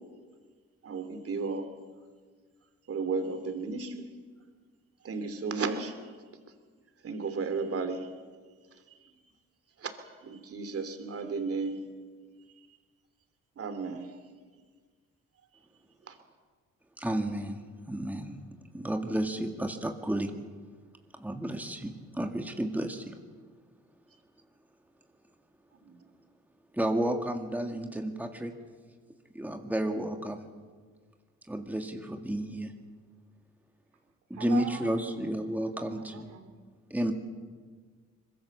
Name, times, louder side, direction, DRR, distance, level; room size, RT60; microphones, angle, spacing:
voice 1, 0.8-1.7 2.9-4.1 5.0-6.0 7.0-8.1 9.8-9.9 10.2-11.9 13.6-14.2 16.1-16.2 25.8-26.0, right 4 dB, 50° right, 8 dB, 3.1 m, -34 dB
voice 2, 17.0-18.4 18.7-20.3 21.1-23.2 26.7-28.5 29.3-30.5 31.5-32.7 34.3-36.3 36.9-37.1, right 1 dB, 5° right, 4 dB, 2.0 m, -32 dB
voice 3, 34.3-35.2 35.4-36.6, right 7 dB, 75° right, 3 dB, 4.4 m, -42 dB
24.0 x 21.5 x 7.3 m, 1.5 s
cardioid pair, 90°, 30 cm